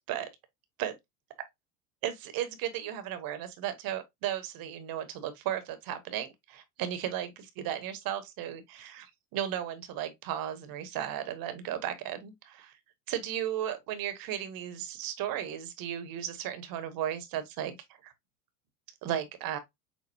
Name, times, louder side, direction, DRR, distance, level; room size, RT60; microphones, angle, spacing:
voice 1, 2.0-12.8 13.1-17.8 18.0-18.1 19.0-19.6, right 11 dB, 45° right, 1.1 m, -35 dB
6.2 x 2.2 x 2.7 m
hypercardioid pair, 85°, 49 cm